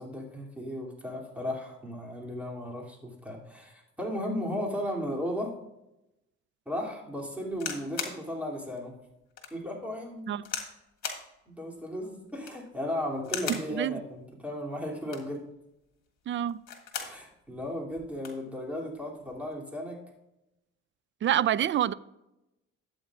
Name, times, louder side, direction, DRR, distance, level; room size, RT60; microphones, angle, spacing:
voice 1, 0.0-5.5 6.7-8.9 9.5-10.4 11.5-15.4 17.0-20.0, equal, 5° right, 2.9 m, -35 dB
sound 1, 7.5-8.2 8.8-8.9 9.4-9.5 10.4-10.7 11.0-11.3 12.3-12.7 13.2-13.7 14.9-15.4 16.5-17.2 17.6-17.7 17.9-18.4 19.3-19.5, left 7 dB, 65° left, 1.7 m, -37 dB
voice 2, 13.5-14.0 16.3-16.6 21.2-21.9, right 11 dB, 40° right, 0.4 m, -27 dB
12.5 x 8.5 x 2.5 m
cardioid pair, 90°, 30 cm